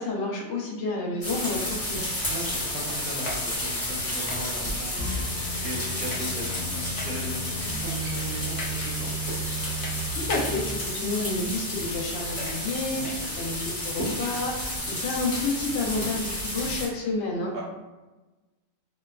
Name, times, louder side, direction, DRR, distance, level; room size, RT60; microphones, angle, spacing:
voice 1, 0.0-2.1 10.1-17.5, left 2 dB, 85° left, -2 dB, 0.6 m, -30 dB
sound 1, 1.2-16.9, left 1 dB, 30° left, 0.6 m, -31 dB
voice 2, 2.3-9.1 12.8-13.1 17.5-17.6, equal, 65° right, -4 dB, 1.3 m, -37 dB
sound 2, 3.1-5.8 6.0-6.7 7.0-7.4 7.9-8.2 8.5-8.9 9.2-9.5 9.8-10.5 11.7-11.8 12.4-12.6 13.0-13.3, left 2 dB, 65° left, 0.9 m, -40 dB
sound 3, 4.9-10.8, right 1 dB, 40° right, 0.9 m, -35 dB
3.1 x 2.2 x 2.2 m, 1.1 s
omnidirectional pair, 1.8 m